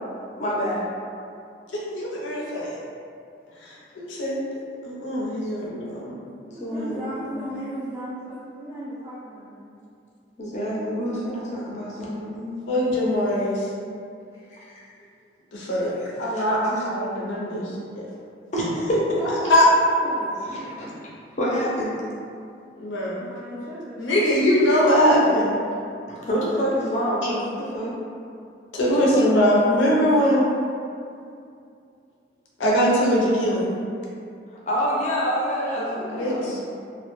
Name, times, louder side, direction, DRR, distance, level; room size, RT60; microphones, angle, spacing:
voice 1, 0.4-0.8 6.6-7.3 10.4-12.7 16.0-16.4 18.5-19.2 20.5-20.9 21.4-21.9 26.1-28.0 28.9-29.3 34.7-36.5, equal, 40° left, -5 dB, 0.5 m, -27 dB
voice 2, 1.9-2.8 3.6-4.4 4.8-6.1 12.7-13.7 15.5-18.0 19.4-19.6 22.8-23.2 24.0-25.5 27.2-27.3 28.7-30.5 32.6-33.7 35.8-36.6, equal, 90° left, -5 dB, 0.5 m, -22 dB
voice 3, 6.4-9.9 14.3-14.4 19.1-20.6 23.2-24.3, equal, 15° right, -11 dB, 0.4 m, -36 dB
2.2 x 2.1 x 3.0 m, 2.4 s
head